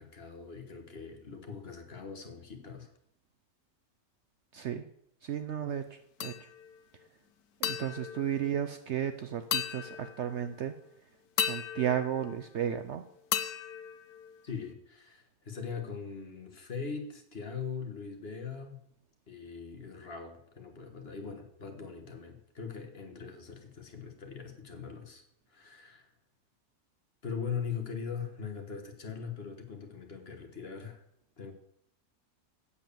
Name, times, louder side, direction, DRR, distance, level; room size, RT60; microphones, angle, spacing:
voice 1, 0.0-2.9 14.4-18.8 19.3-25.2 25.5-26.1 27.2-31.0 31.4-31.5, left 6 dB, 45° left, 4 dB, 1.6 m, -41 dB
voice 2, 4.5-4.8 5.2-6.5 7.6-10.7 11.4-13.0, right 9 dB, 60° right, 9 dB, 0.8 m, -34 dB
sound 1, 6.2-6.8 7.6-9.1 9.5-10.5 11.4-12.9 13.3-14.7, left 10 dB, 85° left, 1.2 m, -36 dB
8.5 x 7.6 x 6.8 m, 0.74 s
omnidirectional pair, 1.6 m